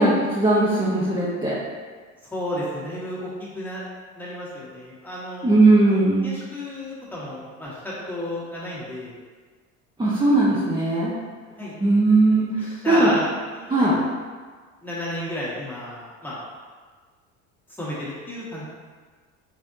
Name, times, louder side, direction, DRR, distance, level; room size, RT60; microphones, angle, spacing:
voice 1, 0.0-1.5 5.4-6.4 10.0-11.1 11.8-12.5 12.9-13.1 13.7-14.0, right 2 dB, 10° right, -7 dB, 0.8 m, -18 dB
voice 2, 2.2-3.8 4.1-5.6 5.9-9.1 11.6-11.7 12.3-13.9 14.8-16.4 17.8-18.6, left 1 dB, 5° left, -8 dB, 1.5 m, -33 dB
3.8 x 3.3 x 2.7 m, 1.5 s
hypercardioid pair, 70°, 39 cm